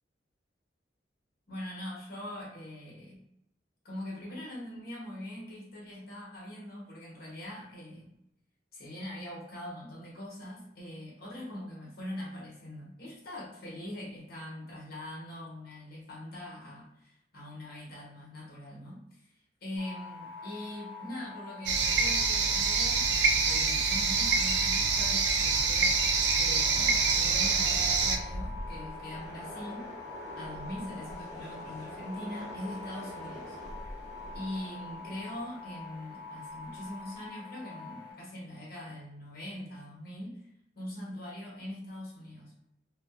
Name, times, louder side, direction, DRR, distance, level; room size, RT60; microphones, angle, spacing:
voice 1, 1.5-3.2 3.8-8.1 8.7-19.3 19.6-26.0 26.4-29.9 30.4-33.6 34.3-40.4 40.7-42.5, left 1 dB, 55° left, -5 dB, 1.0 m, -42 dB
sound 1, 19.8-38.1, left 4 dB, 15° right, 1.0 m, -46 dB
sound 2, 21.7-28.2, right 4 dB, 70° right, 0.3 m, -26 dB
Train, 25.1-37.3, equal, 85° left, 0.9 m, -45 dB
2.6 x 2.4 x 2.4 m, 0.81 s
head